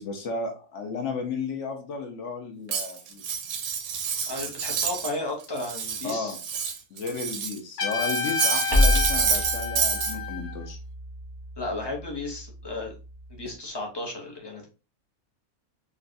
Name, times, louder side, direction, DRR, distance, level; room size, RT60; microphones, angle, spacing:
voice 1, 0.0-3.2 6.0-6.4 6.9-10.8, left 4 dB, 60° left, 4 dB, 0.9 m, -33 dB
Cutlery silverware, 2.7-5.2 5.4-7.6 7.9-10.2, right 6 dB, 80° right, 1.1 m, -28 dB
voice 2, 4.3-6.4 11.6-12.9 13.3-14.7, left 2 dB, 30° left, 0 dB, 0.5 m, -34 dB
Trumpet, 7.8-10.6, left 5 dB, 85° left, 1.4 m, -30 dB
sound 1, 8.7-13.6, left 1 dB, 25° right, 0.7 m, -29 dB
3.9 x 2.3 x 2.5 m, 0.33 s
omnidirectional pair, 1.5 m